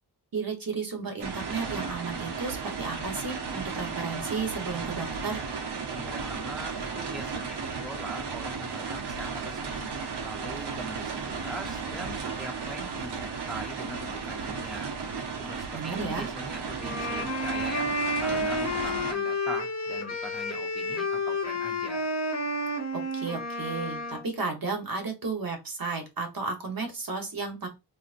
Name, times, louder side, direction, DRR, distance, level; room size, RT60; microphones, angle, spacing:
voice 1, 0.3-5.4 15.7-16.3 22.9-27.7, right 4 dB, 55° right, 1.1 m, -33 dB
sound 1, 1.2-19.1, right 5 dB, 80° right, 0.9 m, -35 dB
voice 2, 5.9-9.9 10.2-14.9 15.4-17.9 18.2-22.1, right 1 dB, ahead, 0.6 m, -41 dB
sound 2, 16.8-24.3, left 1 dB, 40° left, 1.1 m, -30 dB
3.9 x 2.9 x 2.5 m
wide cardioid pair, 110°, 41 cm